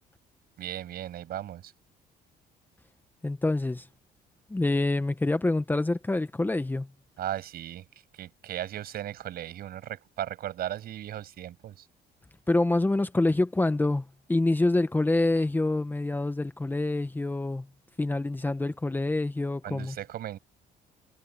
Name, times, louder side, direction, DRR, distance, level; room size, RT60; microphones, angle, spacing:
voice 1, 0.6-1.7 7.2-7.9 8.1-11.9 19.6-20.4, right 12 dB, 65° right, 8.0 m, -36 dB
voice 2, 3.2-3.9 4.5-6.9 12.5-17.7 18.0-20.0, left 2 dB, 10° left, 1.1 m, -26 dB
cardioid pair, 110°, 17 cm